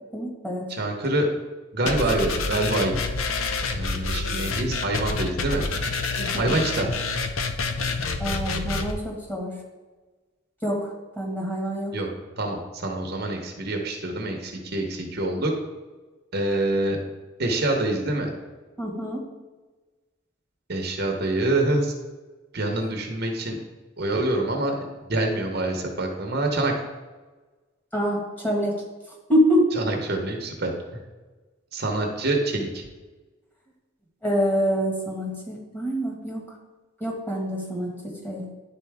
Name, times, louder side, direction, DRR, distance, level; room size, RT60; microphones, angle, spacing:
voice 1, 0.1-0.6 6.2-6.6 8.2-9.5 10.6-11.9 18.8-19.2 27.9-28.7 29.3-29.6 34.2-36.4 37.0-37.9 38.2-38.5, equal, 10° left, -2 dB, 1.5 m, -26 dB
voice 2, 0.7-1.3 1.7-2.9 3.7-5.6 6.4-6.9 11.9-12.1 12.4-15.5 16.3-17.0 17.4-18.3 20.7-21.9 22.5-23.6 24.0-24.8 25.1-26.7 29.7-30.7 31.7-32.8, right 2 dB, 50° right, 3 dB, 0.9 m, -26 dB
sound 1, 1.9-8.9, left 3 dB, 80° left, 0.6 m, -28 dB
11.0 x 4.1 x 3.5 m, 1.3 s
head